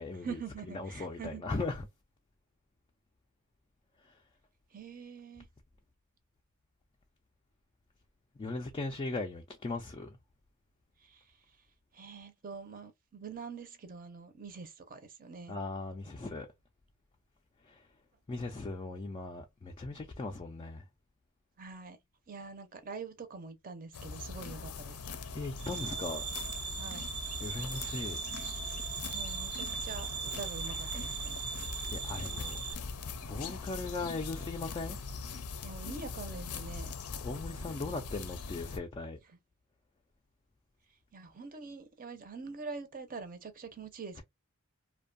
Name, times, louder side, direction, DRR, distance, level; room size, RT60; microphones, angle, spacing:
voice 1, 0.2-1.4 4.7-5.5 11.0-11.4 11.9-15.6 21.6-22.0 22.3-25.0 26.8-27.1 29.1-31.4 35.6-36.9 39.3-39.4 41.1-44.2, right 4 dB, 40° right, 0.6 m, -45 dB
voice 2, 0.7-1.9 8.4-10.2 15.5-16.5 17.7-17.8 18.3-20.8 25.3-26.3 27.4-28.2 31.9-32.6 33.2-35.0 37.2-39.2, left 3 dB, 25° left, 0.3 m, -38 dB
sound 1, 23.9-38.8, left 4 dB, 90° left, 0.5 m, -41 dB
sound 2, 25.6-32.7, right 7 dB, 85° right, 1.2 m, -39 dB
2.6 x 2.2 x 2.5 m
head